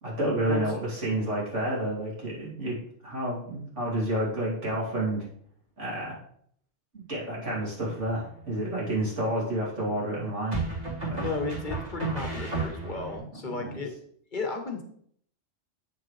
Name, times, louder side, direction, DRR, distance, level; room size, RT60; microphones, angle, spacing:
voice 1, 0.0-5.3 5.8-6.2 6.9-10.6 11.0-11.3 13.2-13.3 13.6-13.8, right 1 dB, 85° right, -5 dB, 3.1 m, -30 dB
sound 1, 7.8-8.4 10.5-13.2, right 3 dB, 35° right, 2.1 m, -33 dB
voice 2, 11.2-13.9 14.3-14.8, left 3 dB, 45° left, 4 dB, 1.1 m, -34 dB
7.8 x 6.6 x 3.2 m, 0.63 s
omnidirectional pair, 1.2 m